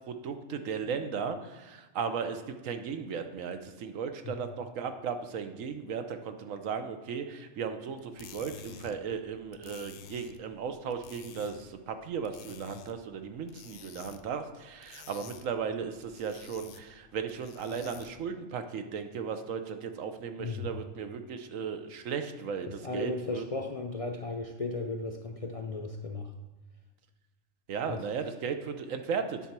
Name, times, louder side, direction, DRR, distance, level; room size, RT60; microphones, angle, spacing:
voice 1, 0.1-23.4 27.7-29.4, right 6 dB, 85° right, 8 dB, 1.2 m, -36 dB
whisk handle - metal teaspoon, 8.0-18.3, left 8 dB, 65° left, 0.9 m, -51 dB
voice 2, 22.7-26.3 27.9-28.0, left 3 dB, 45° left, 2 dB, 0.4 m, -35 dB
9.7 x 4.2 x 5.9 m, 1.2 s
omnidirectional pair, 1.3 m